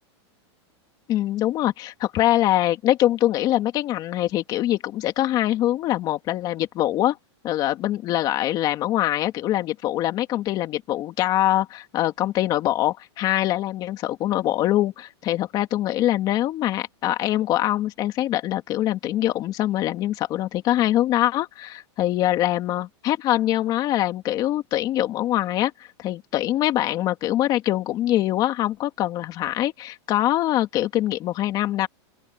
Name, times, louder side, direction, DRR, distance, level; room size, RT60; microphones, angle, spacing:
voice 1, 1.1-7.2 7.4-31.9, left 14 dB, 25° left, 2.4 m, -23 dB
open air
supercardioid pair, 165°, 15 cm